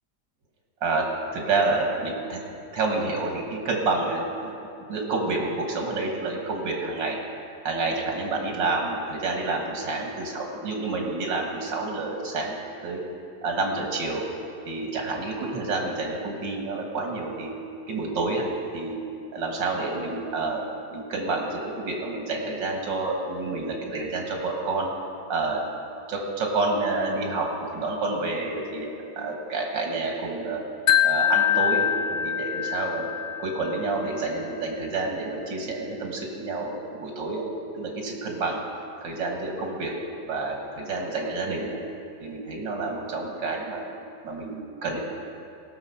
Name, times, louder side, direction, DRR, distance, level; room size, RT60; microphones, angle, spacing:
voice 1, 1.3-2.4 2.7-4.5 4.9-7.2 7.6-12.6 12.8-13.0 13.4-14.2 14.7-17.5 17.9-18.5 18.7-19.0 19.3-20.7 20.9-24.9 25.3-25.6 26.1-28.9 29.2-30.6 31.0-33.1 33.4-37.4 37.7-38.6 39.0-39.9 40.2-41.8 42.2-43.8 44.2-45.0, right 3 dB, 90° right, 0 dB, 2.2 m, -28 dB
Wind chime, 30.9-34.0, left 9 dB, 65° left, 1.2 m, -24 dB
18.0 x 6.7 x 5.6 m, 2.5 s
omnidirectional pair, 1.9 m